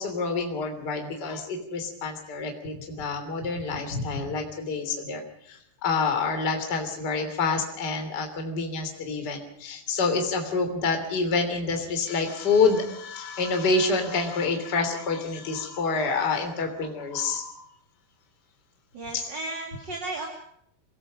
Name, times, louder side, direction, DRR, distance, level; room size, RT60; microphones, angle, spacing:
voice 1, 0.0-5.2 5.5-17.6 19.1-19.2, left 4 dB, 25° left, 5 dB, 3.3 m, -27 dB
voice 2, 18.9-20.3, right 2 dB, 30° right, 3 dB, 2.6 m, -34 dB
27.5 x 19.0 x 5.2 m, 0.69 s
omnidirectional pair, 4.6 m